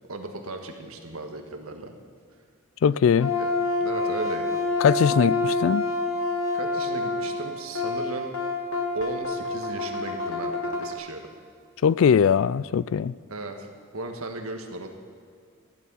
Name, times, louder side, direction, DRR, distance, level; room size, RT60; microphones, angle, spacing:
voice 1, 0.1-1.9 3.4-3.5 3.8-4.6 6.5-8.3 8.9-11.2 13.3-13.7 13.9-14.9, right 2 dB, 85° right, 4 dB, 1.7 m, -36 dB
voice 2, 2.8-3.3 4.8-5.8 11.8-13.1, left 7 dB, 65° left, 19 dB, 0.3 m, -20 dB
sound 1, 3.2-10.9, left 3 dB, 80° left, 1.7 m, -27 dB
14.5 x 11.0 x 5.6 m, 2.2 s
head